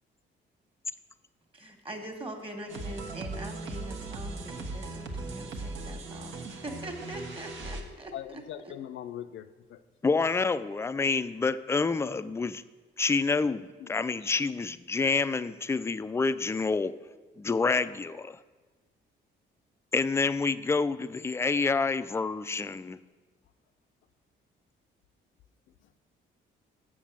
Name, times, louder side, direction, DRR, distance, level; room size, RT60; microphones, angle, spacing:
voice 1, 1.5-8.7, right 1 dB, 25° right, 4 dB, 1.6 m, -42 dB
sound 1, 2.7-7.8, right 3 dB, 75° right, 1.3 m, -38 dB
voice 2, 8.1-9.8 13.8-13.9, left 11 dB, 70° left, 11 dB, 0.5 m, -41 dB
voice 3, 10.0-12.6 13.0-16.9 17.4-18.4 19.9-23.0, left 4 dB, 15° left, 14 dB, 0.3 m, -28 dB
7.3 x 6.6 x 7.3 m, 1.3 s
cardioid pair, 90°, 20 cm